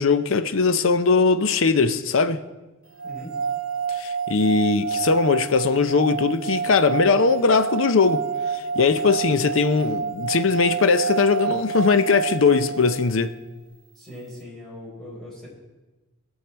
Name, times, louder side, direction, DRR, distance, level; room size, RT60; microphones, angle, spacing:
voice 1, 0.0-2.4 4.0-8.2 8.5-13.3, left 4 dB, 70° left, 0.6 m, -20 dB
voice 2, 3.0-3.3 14.0-15.5, left 1 dB, ahead, 4.7 m, -40 dB
sound 1, 3.0-13.1, right 6 dB, 80° right, 0.8 m, -29 dB
19.5 x 6.5 x 4.5 m
head